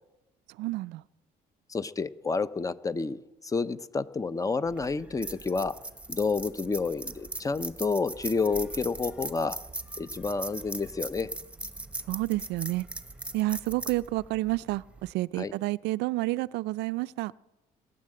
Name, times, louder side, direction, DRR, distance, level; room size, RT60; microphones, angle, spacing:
voice 1, 0.6-1.0 12.1-12.9 13.3-17.3, right 19 dB, 85° right, 0.4 m, -30 dB
voice 2, 1.7-5.8 6.1-9.6 10.0-11.3 15.4-15.5, left 4 dB, 20° left, 0.6 m, -30 dB
sound 1, 4.7-15.1, right 2 dB, 5° right, 1.1 m, -40 dB
19.0 x 9.9 x 7.7 m
cardioid pair, 110°, 17 cm